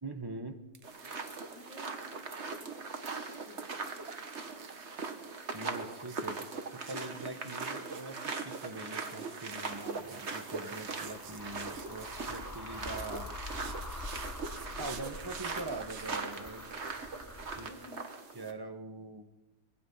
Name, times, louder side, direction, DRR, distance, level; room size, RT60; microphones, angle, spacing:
voice 1, 0.0-0.6 5.5-6.4 6.7-13.3 14.8-16.7 17.5-17.7 18.3-19.3, right 2 dB, 15° right, 7 dB, 1.1 m, -43 dB
sound 1, 0.7-1.0 1.3-16.1, right 7 dB, 55° right, 1.4 m, -53 dB
sound 2, 0.8-18.5, right 4 dB, 35° right, 1.7 m, -40 dB
voice 2, 1.5-3.8 17.6-18.2, left 2 dB, 70° left, 3 dB, 3.5 m, -54 dB
sound 3, 9.5-17.7, left 2 dB, 15° left, 0.6 m, -46 dB
25.5 x 19.5 x 5.7 m, 1.1 s
omnidirectional pair, 2.1 m